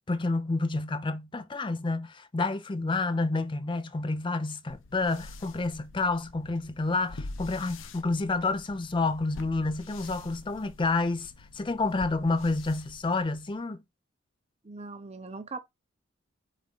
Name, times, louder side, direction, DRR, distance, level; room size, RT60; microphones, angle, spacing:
voice 1, 0.1-13.8, left 3 dB, 25° left, 0.5 m, -29 dB
sound 1, 4.7-13.6, left 2 dB, 90° left, 0.7 m, -46 dB
voice 2, 14.6-15.6, right 3 dB, 35° right, 0.7 m, -40 dB
4.9 x 3.6 x 5.4 m
head